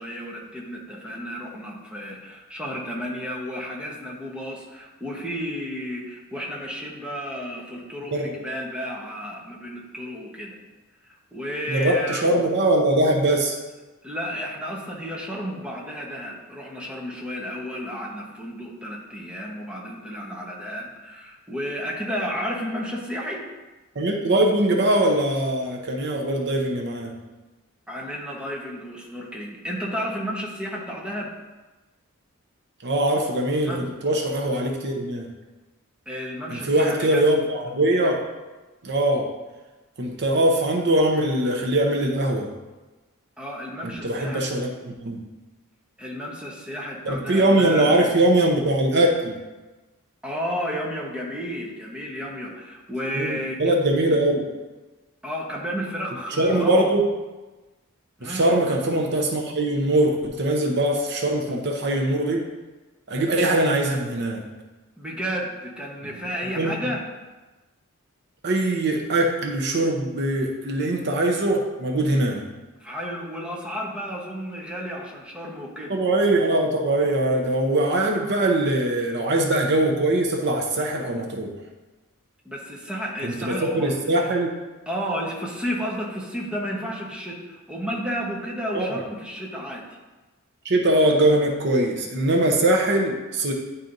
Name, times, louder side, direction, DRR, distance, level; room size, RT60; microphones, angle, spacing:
voice 1, 0.0-10.6 11.3-12.3 14.0-23.5 27.9-31.3 33.6-33.8 36.1-37.3 43.4-44.5 46.0-48.0 50.2-53.7 55.2-56.9 58.2-58.5 65.0-67.0 72.8-76.0 82.4-83.9 84.9-90.0, equal, 5° right, -3 dB, 1.0 m, -32 dB
voice 2, 11.7-13.6 24.0-27.2 32.8-35.3 36.5-38.3 38.8-39.3 40.0-42.5 43.8-45.3 47.1-49.4 53.1-54.5 56.4-57.1 58.2-62.5 63.1-64.5 66.0-66.2 66.6-66.7 68.4-72.5 75.9-81.6 83.2-84.5 88.7-89.0 90.6-93.5, right 1 dB, 55° right, 1 dB, 0.7 m, -22 dB
10.5 x 4.1 x 2.6 m, 1.2 s
head